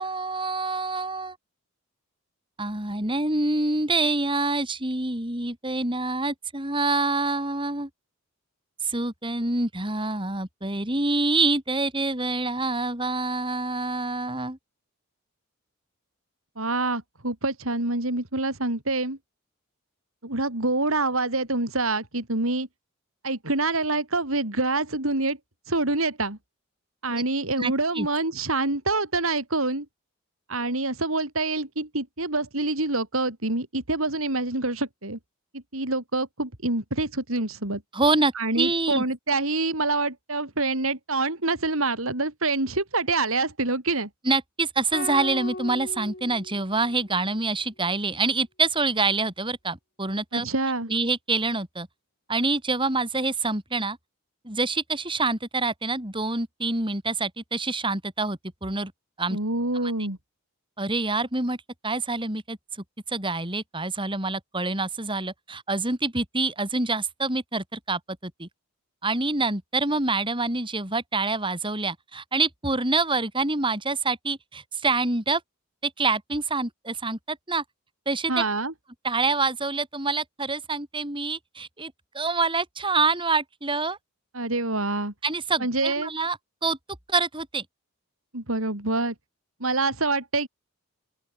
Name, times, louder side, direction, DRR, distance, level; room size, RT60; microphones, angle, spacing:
voice 1, 0.0-1.4 2.6-7.9 8.8-14.6 27.1-27.2 27.6-28.1 37.9-39.0 44.2-50.5 50.9-51.9 52.3-54.0 54.4-58.9 59.2-59.4 59.7-59.9 60.8-61.6 61.8-68.5 69.0-75.4 75.8-77.6 78.1-78.4 79.0-84.0 85.2-86.8 87.1-87.7, right 3 dB, 25° right, 5.2 m, -26 dB
voice 2, 16.6-19.2 20.2-22.7 23.2-25.4 25.7-26.4 27.0-29.9 30.5-35.2 35.5-37.8 38.4-44.1 50.3-50.9 59.3-60.2 78.3-78.7 84.3-85.1 85.6-86.1 88.3-89.1 89.6-90.5, right 2 dB, 70° right, 4.4 m, -26 dB
sound 1, 44.9-47.2, left 2 dB, 45° left, 7.5 m, -37 dB
open air
head